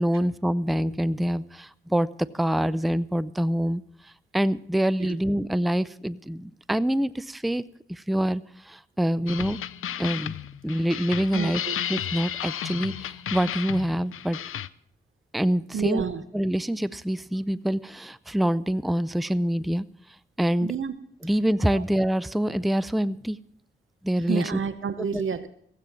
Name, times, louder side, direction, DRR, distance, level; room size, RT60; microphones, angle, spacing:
voice 1, 0.0-2.1 2.3-3.8 4.3-7.6 7.9-9.6 10.0-10.3 10.6-11.6 11.9-14.4 15.3-16.0 16.3-19.9 20.4-20.7 21.2-23.4 24.0-24.4 25.0-25.2, equal, ahead, 0.5 m, -25 dB
sound 1, 9.3-14.7, left 10 dB, 85° left, 0.5 m, -33 dB
voice 2, 11.3-11.8 15.7-16.2 20.6-20.9 21.7-21.9 24.2-25.5, right 6 dB, 75° right, 0.9 m, -30 dB
16.0 x 8.5 x 7.4 m
cardioid pair, 70°, 21 cm